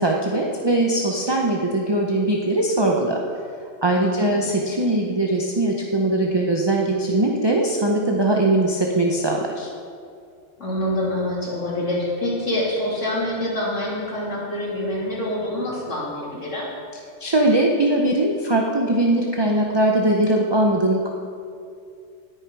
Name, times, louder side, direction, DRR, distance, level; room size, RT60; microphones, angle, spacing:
voice 1, 0.0-3.2 3.8-9.7 17.2-21.1, right 1 dB, 25° right, 0 dB, 0.8 m, -20 dB
voice 2, 4.0-4.4 10.6-16.6, left 1 dB, 75° left, -6 dB, 3.3 m, -26 dB
18.0 x 6.6 x 4.8 m, 2.4 s
omnidirectional pair, 1.3 m